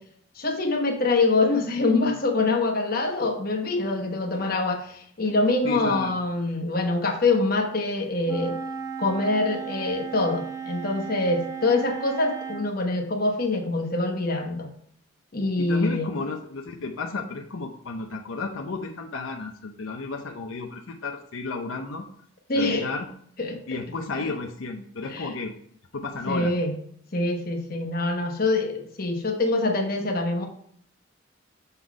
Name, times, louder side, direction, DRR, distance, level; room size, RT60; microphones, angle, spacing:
voice 1, 0.4-8.6 9.0-14.7 15.3-16.1 22.5-22.9 23.4-23.8 25.1-25.4 26.3-26.8 27.1-30.5, left 2 dB, 45° left, 3 dB, 1.1 m, -25 dB
voice 2, 5.6-6.1 15.6-22.0 22.6-23.1 23.7-25.5 25.9-26.5, left 3 dB, 80° left, 3 dB, 0.7 m, -32 dB
Wind instrument woodwind instrument, 8.2-12.7, right 6 dB, 15° right, 0.5 m, -35 dB
6.8 x 4.0 x 4.7 m, 0.64 s
head